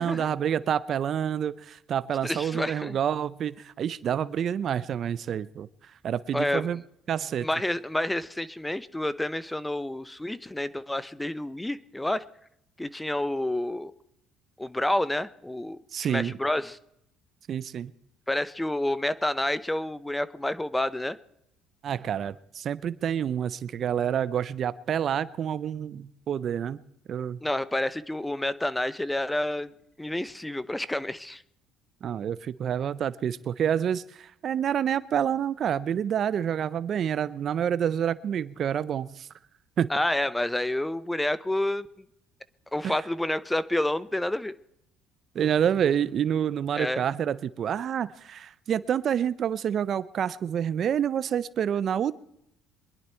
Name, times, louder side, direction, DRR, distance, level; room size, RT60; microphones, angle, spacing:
voice 1, 0.0-5.7 6.0-6.8 7.1-7.5 15.9-16.3 17.5-17.9 21.8-26.8 27.1-27.4 32.0-39.3 39.8-39.9 42.8-42.9 45.3-52.1, right 9 dB, 45° right, 18 dB, 0.5 m, -28 dB
voice 2, 2.2-3.0 6.3-6.7 7.4-12.2 12.8-13.9 14.6-15.8 16.1-16.8 18.3-21.2 27.4-29.7 30.0-31.4 39.9-41.9 42.7-44.5 46.7-47.0, left 1 dB, 5° left, 17 dB, 0.6 m, -29 dB
23.5 x 11.0 x 4.4 m, 0.78 s
cardioid pair, 110°, 0 cm